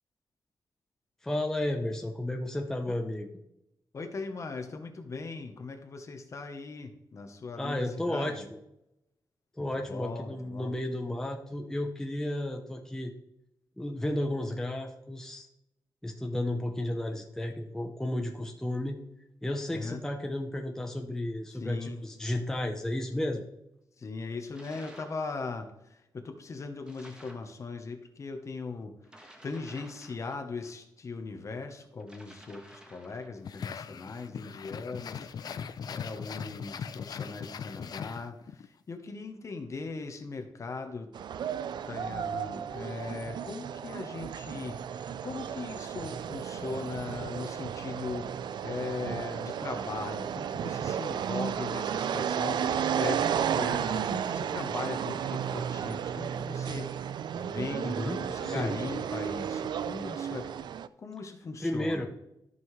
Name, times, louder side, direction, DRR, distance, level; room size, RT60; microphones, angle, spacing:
voice 1, 1.2-3.3 7.6-8.6 9.6-13.1 13.8-15.5 16.0-19.0 19.4-23.4 57.8-58.8 61.6-62.1, left 1 dB, 5° left, 2 dB, 0.7 m, -33 dB
voice 2, 3.9-8.5 9.6-10.7 19.7-20.0 21.5-22.0 24.0-28.9 29.4-35.3 35.9-41.1 41.8-53.2 53.5-56.9 57.3-60.5 61.0-62.1, left 4 dB, 40° left, 6 dB, 0.9 m, -39 dB
sound 1, 24.5-25.2 26.8-27.5 29.0-30.7 32.0-33.4, right 1 dB, 10° right, 1.2 m, -53 dB
sound 2, 33.4-38.7, left 7 dB, 55° left, 0.5 m, -40 dB
sound 3, 41.1-60.9, right 8 dB, 65° right, 0.4 m, -33 dB
13.5 x 5.5 x 3.2 m, 0.84 s
wide cardioid pair, 155°, 8 cm